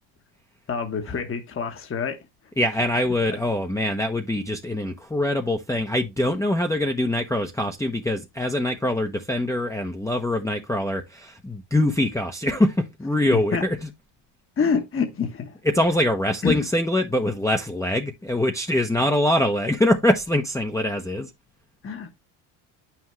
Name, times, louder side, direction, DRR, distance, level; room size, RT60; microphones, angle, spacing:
voice 1, 0.7-2.2 3.3-3.4 13.3-13.6 14.6-15.6 16.4-16.7 21.8-22.1, left 6 dB, 25° left, 1.2 m, -26 dB
voice 2, 2.6-13.8 15.7-21.3, left 1 dB, 5° left, 0.9 m, -23 dB
8.5 x 6.0 x 3.1 m
cardioid pair, 105°, 48 cm